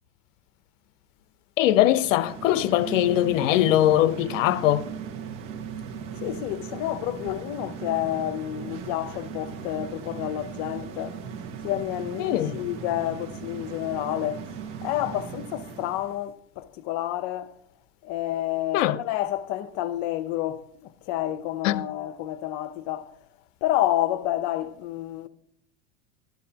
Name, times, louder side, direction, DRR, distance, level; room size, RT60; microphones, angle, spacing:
voice 1, 1.6-4.9 12.2-12.6 18.7-19.0 21.6-21.9, left 13 dB, 80° left, 0.7 m, -21 dB
sound 1, 1.7-16.2, right 7 dB, 65° right, 1.8 m, -38 dB
voice 2, 6.2-11.2 11.6-14.4 14.8-17.5 18.0-23.1 23.6-25.3, left 13 dB, 55° left, 0.8 m, -29 dB
12.0 x 11.5 x 2.9 m
supercardioid pair, 130°, 38 cm